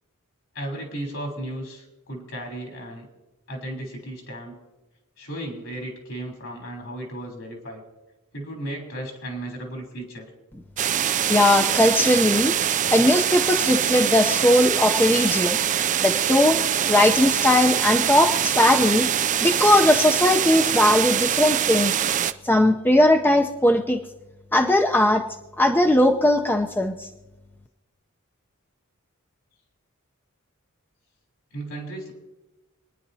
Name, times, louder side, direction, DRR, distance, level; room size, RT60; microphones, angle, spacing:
voice 1, 0.5-3.0 3.5-4.6 5.2-7.8 8.3-10.3 31.5-32.1, right 1 dB, 65° left, 1 dB, 3.4 m, -35 dB
sound 1, 10.8-22.3, right 10 dB, 35° right, 0.4 m, -23 dB
voice 2, 11.3-12.5 12.9-15.6 16.0-21.9 22.4-24.0 24.5-25.2 25.6-27.1, left 1 dB, 10° left, 3 dB, 0.6 m, -19 dB
27.5 x 10.0 x 2.8 m, 1.1 s
head